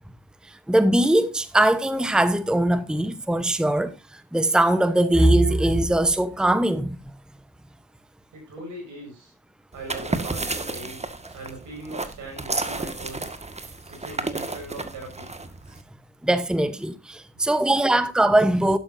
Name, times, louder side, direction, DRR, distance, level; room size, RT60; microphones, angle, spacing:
voice 1, 0.4-7.0 16.2-18.8, right 1 dB, 5° right, 1.0 m, -21 dB
voice 2, 8.3-9.3 9.7-11.0 11.3-13.4 13.9-15.3, right 2 dB, 75° right, 6.5 m, -40 dB
sound 1, 9.7-15.8, right 2 dB, 20° right, 1.8 m, -32 dB
12.0 x 11.5 x 2.7 m
hypercardioid pair, 40°, 30 cm